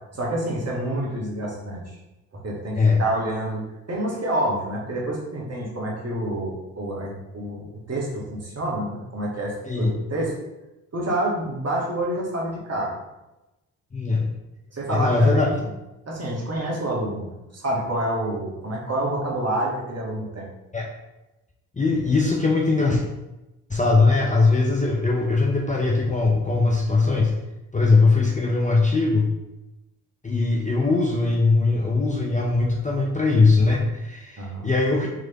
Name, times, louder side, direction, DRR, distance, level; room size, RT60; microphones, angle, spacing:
voice 1, 0.1-1.8 2.3-10.3 10.9-12.9 14.7-15.7 16.1-20.5 34.4-34.7, right 1 dB, 35° right, -3 dB, 1.5 m, -28 dB
voice 2, 13.9-14.3 14.9-15.6 20.7-20.9 21.8-23.0 23.7-27.3 27.7-29.3 30.2-35.1, left 3 dB, 15° left, -2 dB, 0.6 m, -20 dB
3.8 x 3.1 x 2.9 m, 0.99 s
hypercardioid pair, 45°, 46 cm